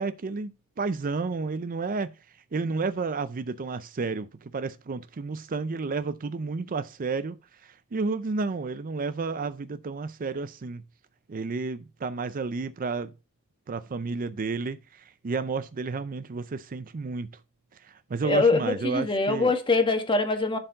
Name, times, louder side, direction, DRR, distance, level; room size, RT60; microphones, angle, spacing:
voice 1, 0.0-2.1 2.5-7.4 7.6-10.8 11.3-13.1 13.7-17.3 17.8-19.5, right 4 dB, 40° right, 0.5 m, -31 dB
voice 2, 18.2-20.6, left 3 dB, 25° left, 1.4 m, -23 dB
11.0 x 4.4 x 4.0 m
head